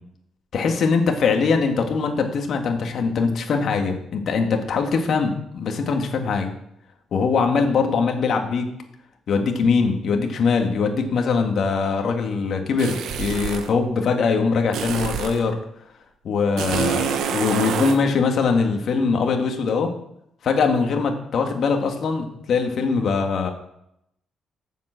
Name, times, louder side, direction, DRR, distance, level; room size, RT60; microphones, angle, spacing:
voice 1, 0.5-6.5 7.1-8.7 9.3-15.6 16.2-19.9 20.4-23.5, left 5 dB, 60° left, 4 dB, 1.9 m, -22 dB
sound 1, 12.8-13.7 14.7-15.4 16.6-18.0, right 8 dB, 80° right, 1.0 m, -26 dB
7.6 x 7.3 x 7.6 m, 0.78 s
cardioid pair, 90°, 0 cm